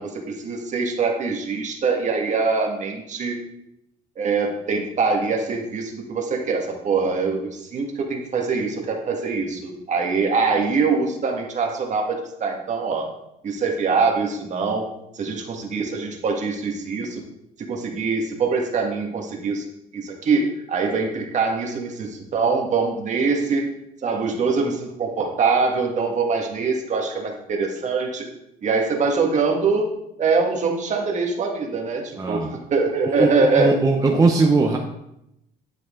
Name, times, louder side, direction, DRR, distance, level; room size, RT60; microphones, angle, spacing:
voice 1, 0.0-3.3 4.2-13.1 13.4-14.9 15.1-17.2 17.7-19.6 19.9-23.7 24.0-28.3 28.6-29.9 30.2-33.7, right 4 dB, 45° right, 1 dB, 1.8 m, -23 dB
voice 2, 32.2-32.5 33.0-34.8, right 3 dB, 20° right, 1 dB, 0.9 m, -19 dB
10.5 x 6.2 x 3.8 m, 0.82 s
cardioid pair, 110°, 17 cm